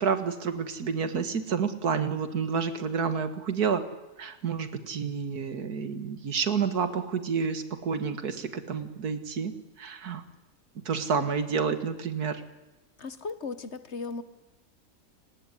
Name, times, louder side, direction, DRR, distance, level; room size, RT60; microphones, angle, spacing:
voice 1, 0.0-3.8 4.2-10.2 10.9-12.4, right 6 dB, 75° right, 11 dB, 2.1 m, -29 dB
voice 2, 13.0-14.2, left 4 dB, 50° left, 13 dB, 1.4 m, -36 dB
29.5 x 18.5 x 9.9 m, 1.1 s
omnidirectional pair, 1.6 m